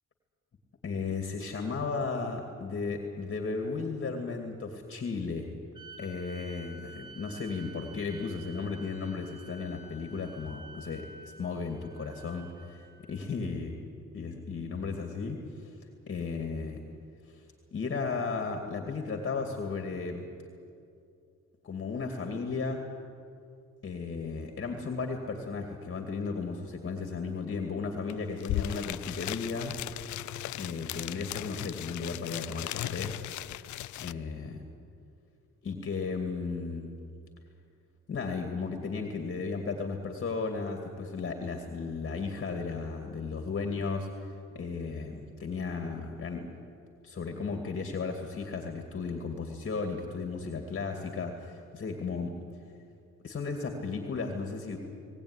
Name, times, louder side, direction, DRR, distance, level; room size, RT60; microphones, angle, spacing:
voice 1, 0.8-5.5 6.0-13.8 14.1-15.8 16.1-16.8 17.3-17.4 17.7-20.3 21.6-22.8 23.8-29.8 30.6-33.1 34.0-34.6 35.6-37.0 38.1-46.5 47.0-52.3 53.2-54.8, left 4 dB, 40° left, 4 dB, 2.5 m, -35 dB
sound 1, 5.7-13.2, right 2 dB, 15° right, 3.4 m, -50 dB
sound 2, 28.1-28.2 28.4-34.1, left 14 dB, 75° left, 0.6 m, -37 dB
20.0 x 18.0 x 9.9 m, 2.4 s
cardioid pair, 90°, 30 cm